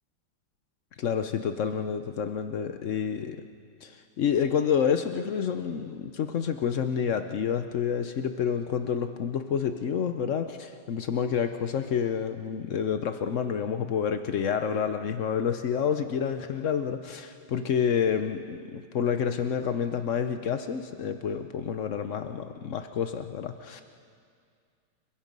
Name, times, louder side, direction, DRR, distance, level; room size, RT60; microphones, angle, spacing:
voice 1, 1.0-3.4 3.8-23.8, left 7 dB, 80° left, 8 dB, 0.6 m, -29 dB
30.0 x 22.5 x 5.3 m, 2.2 s
omnidirectional pair, 2.3 m